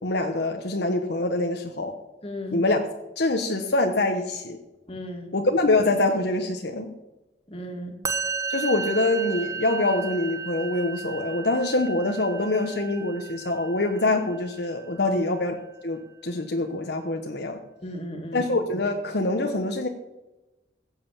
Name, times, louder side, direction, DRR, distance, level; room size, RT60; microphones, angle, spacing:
voice 1, 0.0-1.9 2.5-2.8 3.2-4.6 5.3-6.9 8.5-15.5 15.8-17.6 18.3-19.9, left 2 dB, 65° left, 4 dB, 1.2 m, -25 dB
voice 2, 2.2-2.6 4.9-5.3 7.5-8.0 15.0-15.2 17.8-18.5, equal, 35° left, 4 dB, 2.3 m, -35 dB
Musical instrument, 8.0-15.3, right 5 dB, 20° right, 1.0 m, -34 dB
16.0 x 7.8 x 7.3 m, 1.0 s
head